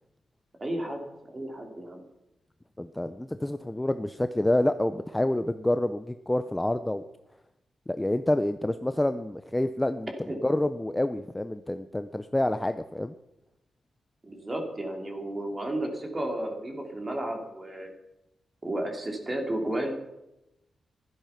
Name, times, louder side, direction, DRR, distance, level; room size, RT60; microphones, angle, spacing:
voice 1, 0.6-1.1 1.3-2.0 10.3-10.4 14.2-17.9 18.6-19.9, right 1 dB, 20° right, 3 dB, 2.7 m, -32 dB
voice 2, 2.8-7.0 7.9-10.1 10.4-13.1, left 1 dB, 10° left, 10 dB, 0.5 m, -28 dB
15.5 x 12.5 x 5.7 m, 0.89 s
wide cardioid pair, 175°, 0 cm